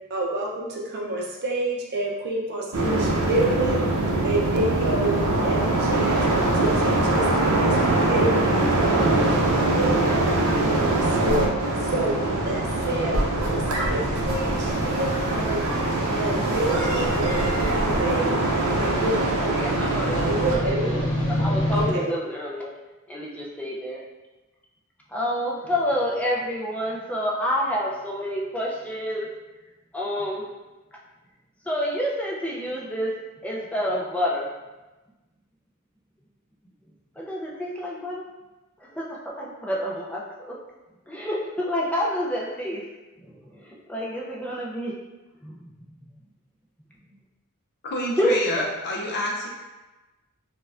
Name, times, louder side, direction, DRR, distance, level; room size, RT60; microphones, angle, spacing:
voice 1, 0.1-3.8 4.2-6.2 6.5-18.3 18.8-19.9 20.2-21.1 21.7-22.1, right 2 dB, 50° right, -2 dB, 0.6 m, -29 dB
sound 1, 2.7-20.6, right 2 dB, 85° right, 0.7 m, -23 dB
sound 2, 4.8-21.9, equal, 65° left, 1.0 m, -33 dB
voice 2, 19.6-21.0 21.2-22.7 23.1-24.0 25.1-29.3 29.9-30.5 31.6-33.1 33.4-34.5 37.2-38.3 38.9-40.5 41.1-42.8 43.2-44.9 45.4-45.9 48.2-48.4, equal, 5° left, -4 dB, 0.4 m, -28 dB
voice 3, 47.8-49.5, left 1 dB, 50° left, -2 dB, 0.6 m, -28 dB
4.4 x 2.2 x 2.4 m, 1.1 s
head